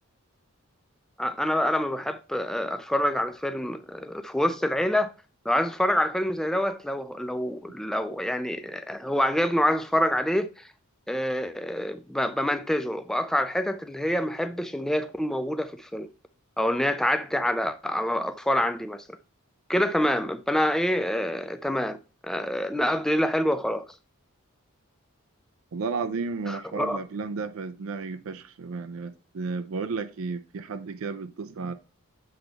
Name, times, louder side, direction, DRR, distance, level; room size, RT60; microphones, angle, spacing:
voice 1, 1.2-5.1 5.5-10.7 11.1-16.1 16.6-19.0 19.7-22.0 22.2-23.8 26.5-27.0, equal, ahead, 0.4 m, -26 dB
voice 2, 25.7-31.7, right 4 dB, 70° right, 0.5 m, -33 dB
7.9 x 3.4 x 3.9 m
head